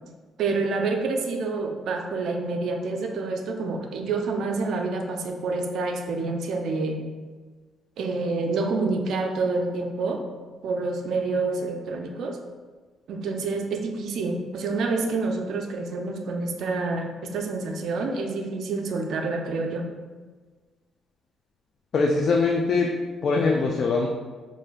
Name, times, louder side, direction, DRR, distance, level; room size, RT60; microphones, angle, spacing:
voice 1, 0.4-7.0 8.0-10.2 10.6-12.4 13.1-19.9, right 3 dB, 75° right, 3 dB, 0.4 m, -28 dB
voice 2, 21.9-24.1, left 4 dB, 55° left, 0 dB, 0.3 m, -22 dB
4.8 x 2.6 x 2.2 m, 1.4 s
cardioid pair, 90°, 0 cm